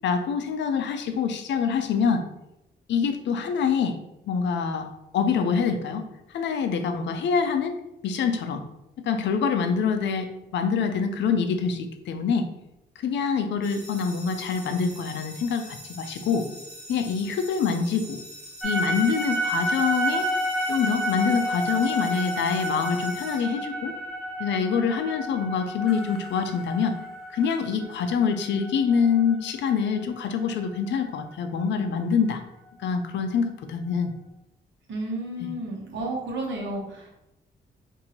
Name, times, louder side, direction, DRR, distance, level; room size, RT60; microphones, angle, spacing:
voice 1, 0.0-2.2 2.9-4.0 4.3-6.0 6.3-8.6 9.0-12.5 13.0-16.5 16.9-18.2 18.6-20.3 20.7-23.9 24.4-27.0 27.3-32.4 32.8-34.1 35.4-35.5, left 6 dB, 70° left, 7 dB, 0.4 m, -25 dB
sound 1, 13.6-24.0, equal, 45° right, 1.1 m, -44 dB
sound 2, 18.6-30.8, equal, ahead, 0.6 m, -30 dB
voice 2, 34.9-37.2, right 1 dB, 75° right, -1 dB, 1.0 m, -32 dB
4.0 x 2.6 x 2.9 m, 0.89 s
wide cardioid pair, 160°, 19 cm